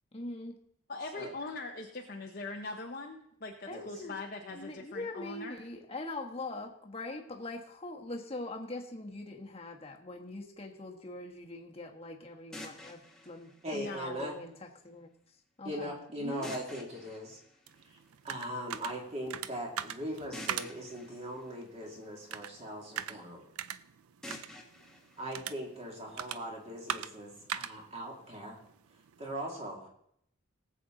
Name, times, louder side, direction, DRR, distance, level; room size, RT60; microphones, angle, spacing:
voice 1, 0.1-0.6 3.7-4.2 4.5-14.5 14.8-15.1 15.6-16.5, left 2 dB, 25° left, 2 dB, 1.3 m, -42 dB
voice 2, 0.9-5.6 13.7-14.2 15.8-15.9, left 3 dB, 40° left, 1 dB, 0.8 m, -42 dB
sound 1, 12.5-14.5 16.4-18.4 20.3-22.5 24.2-26.3, left 1 dB, 5° left, 1.2 m, -50 dB
voice 3, 13.6-14.4 15.6-17.4 17.8-18.0 18.2-23.4 25.2-28.6 29.2-29.9, equal, 30° right, -1 dB, 2.5 m, -40 dB
sound 2, 17.7-29.3, right 9 dB, 75° right, 0.5 m, -43 dB
18.5 x 7.7 x 3.9 m, 0.72 s
head